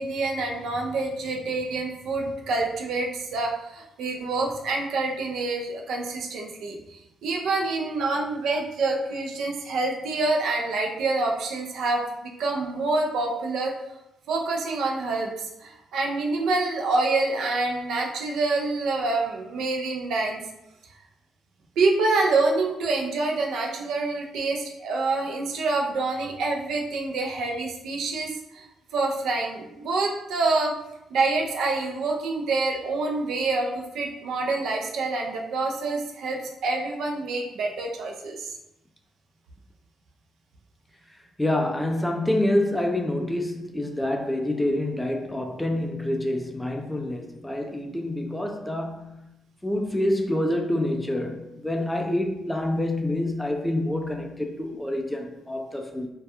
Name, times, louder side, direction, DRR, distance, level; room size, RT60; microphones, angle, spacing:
voice 1, 0.0-13.8 14.3-20.4 21.8-28.7 28.9-30.7 31.1-38.6, right 3 dB, 75° right, 0.4 m, -27 dB
voice 2, 41.4-49.2 49.6-56.1, left 1 dB, 10° left, 0.3 m, -27 dB
2.2 x 2.2 x 2.8 m
cardioid pair, 90°, 0 cm